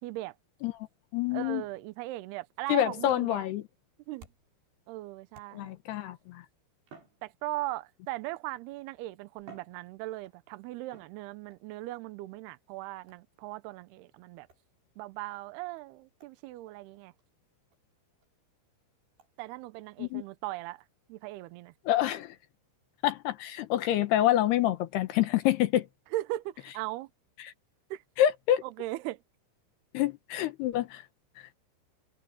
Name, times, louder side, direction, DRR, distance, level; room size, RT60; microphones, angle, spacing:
voice 1, 0.0-0.3 1.3-3.4 4.1-4.3 4.9-5.7 7.2-14.5 15.0-17.1 19.4-20.8 21.1-21.7 26.1-27.1 27.9-28.0 28.6-29.2, right 17 dB, 85° right, 2.3 m, -38 dB
voice 2, 1.1-1.6 2.7-3.6 5.5-6.4 20.0-20.2 21.9-22.3 23.0-25.9 27.4-27.5 28.2-28.6 29.9-31.0, left 12 dB, 70° left, 2.6 m, -27 dB
sound 1, 3.0-4.7 5.3-5.9 6.8-7.9 8.8-8.9 9.4-10.4 10.9-11.6 13.1-13.4 14.5-14.7 15.3-15.4 15.8-15.9 16.2-16.4 16.7-16.8 17.2-17.3 17.7-17.8 18.2-18.3 19.2-19.3, right 5 dB, 55° right, 7.1 m, -56 dB
omnidirectional pair, 5.8 m